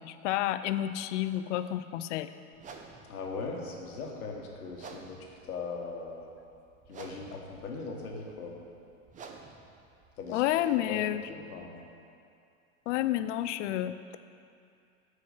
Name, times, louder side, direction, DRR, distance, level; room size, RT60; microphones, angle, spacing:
voice 1, 0.0-2.3 10.3-11.3 12.9-13.9, left 13 dB, 60° left, 12 dB, 0.5 m, -30 dB
sound 1, 2.5-11.3, right 4 dB, 20° right, 0.5 m, -52 dB
voice 2, 3.1-6.3 6.9-8.6 10.2-10.4 10.8-11.0 11.3-11.8, left 4 dB, 85° left, 0 dB, 1.4 m, -39 dB
6.5 x 4.9 x 6.9 m, 2.5 s
hypercardioid pair, 105°, 43 cm